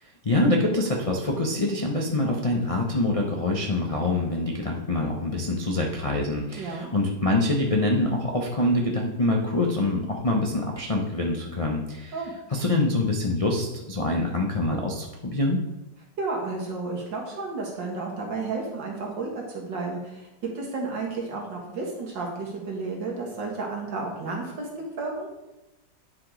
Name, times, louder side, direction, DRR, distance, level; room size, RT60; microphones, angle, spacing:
voice 1, 0.0-12.2 12.5-15.6, left 2 dB, 65° left, -2 dB, 0.3 m, -25 dB
voice 2, 6.6-6.9 12.1-12.3 16.2-20.3 20.6-24.7 25.0-25.3, right 3 dB, 75° right, -1 dB, 2.3 m, -32 dB
9.8 x 4.9 x 3.8 m, 0.98 s
omnidirectional pair, 2.0 m